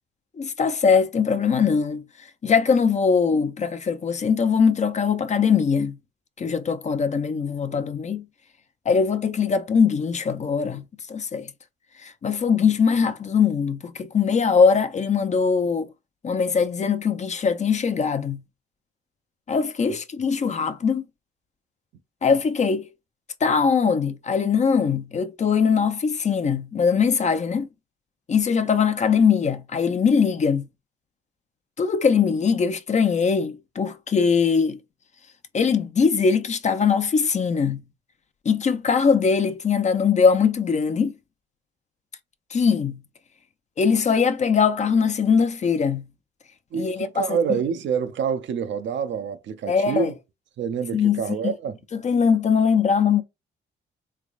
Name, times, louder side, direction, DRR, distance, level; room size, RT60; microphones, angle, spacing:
voice 1, 0.4-2.0 2.4-6.0 6.4-8.2 8.9-10.8 11.1-11.5 12.0-15.9 16.2-18.4 19.5-21.0 22.2-22.9 23.4-27.7 28.3-30.7 31.8-34.8 35.5-37.8 38.4-41.1 42.5-43.0 43.8-46.1 46.7-47.4 49.7-50.1 50.9-51.5 52.0-53.2, left 6 dB, 35° left, 0.5 m, -21 dB
voice 2, 46.7-50.1 50.6-51.8, right 7 dB, 70° right, 0.6 m, -27 dB
3.4 x 3.3 x 2.4 m
cardioid pair, 90°, 20 cm